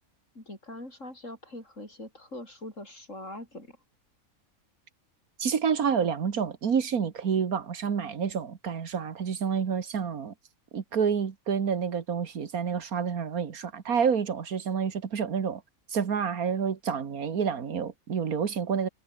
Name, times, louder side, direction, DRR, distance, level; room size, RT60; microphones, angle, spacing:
voice 1, 0.3-3.8, left 1 dB, 60° left, 8.4 m, -42 dB
voice 2, 5.4-10.3 10.7-15.6 15.9-18.9, right 7 dB, 85° right, 2.0 m, -28 dB
omnidirectional pair, 1.5 m